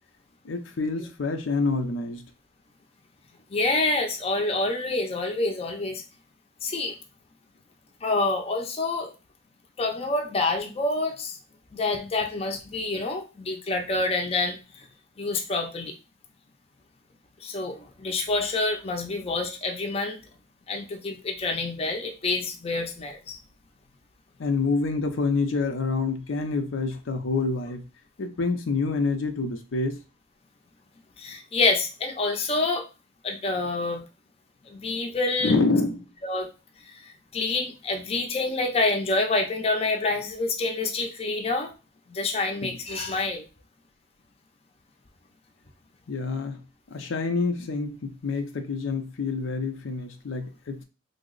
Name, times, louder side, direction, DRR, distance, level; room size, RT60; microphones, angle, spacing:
voice 1, 0.4-2.2 24.4-27.9 28.2-30.0 35.4-36.1 42.6-42.8 46.1-46.6 46.9-50.8, left 3 dB, 85° left, 5 dB, 0.5 m, -27 dB
voice 2, 3.5-6.0 6.6-7.0 8.0-9.1 9.8-11.4 11.7-14.9 15.2-15.9 17.4-20.2 20.7-23.4 31.2-32.9 33.2-34.0 34.7-35.5 36.2-36.5 36.9-41.7 42.1-43.4, left 2 dB, 30° left, 3 dB, 0.5 m, -27 dB
3.4 x 2.0 x 3.8 m, 0.30 s
head